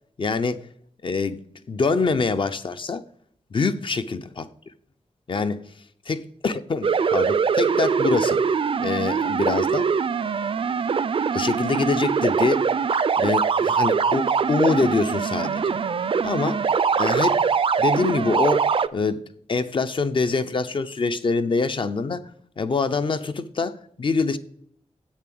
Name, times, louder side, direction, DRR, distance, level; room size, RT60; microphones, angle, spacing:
voice 1, 0.2-0.6 1.0-3.0 3.5-4.5 5.3-5.6 6.1-8.4 8.8-9.9 11.3-12.7 13.2-15.8 16.2-16.6 17.0-17.4 17.8-19.2 19.5-22.2 22.6-24.4, left 4 dB, 45° left, 0.6 m, -25 dB
sound 1, 6.8-18.9, right 6 dB, 50° right, 0.4 m, -22 dB
8.3 x 7.3 x 7.8 m
wide cardioid pair, 145°, 12 cm